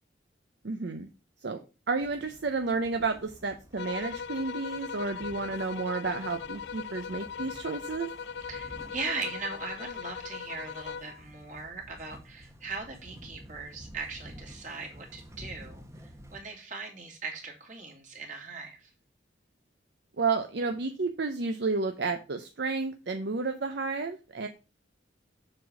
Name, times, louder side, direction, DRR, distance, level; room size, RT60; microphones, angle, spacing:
voice 1, 0.6-1.1 1.4-1.6 1.9-8.1 20.2-24.5, right 4 dB, 65° right, 7 dB, 0.7 m, -31 dB
sound 1, 2.0-16.4, equal, 15° right, 1.0 m, -51 dB
sound 2, 3.8-11.2, left 7 dB, 60° left, 0.3 m, -39 dB
voice 2, 8.5-15.8 16.3-18.9, right 4 dB, 45° right, 0 dB, 2.6 m, -39 dB
7.5 x 4.0 x 6.1 m, 0.32 s
head